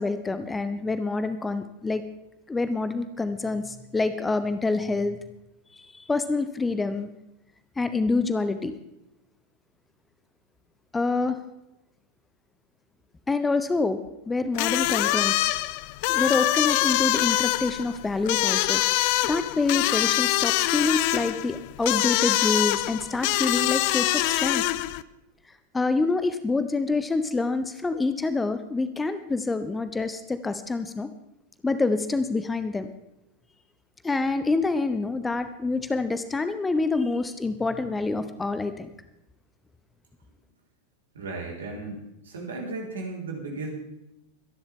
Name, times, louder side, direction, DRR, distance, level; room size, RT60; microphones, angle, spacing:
voice 1, 0.0-2.0 2.5-5.2 5.7-7.1 7.8-8.7 10.9-11.4 13.3-14.0 14.3-15.3 16.1-18.8 19.2-24.6 25.7-31.1 31.6-32.9 34.0-38.9, left 3 dB, 10° left, 11 dB, 0.8 m, -26 dB
sound 1, 14.5-25.0, left 17 dB, 45° left, 0.5 m, -24 dB
voice 2, 41.1-43.7, right 3 dB, 65° right, -1 dB, 4.5 m, -35 dB
24.0 x 11.0 x 3.7 m, 0.90 s
figure-of-eight pair, 90°, 0 cm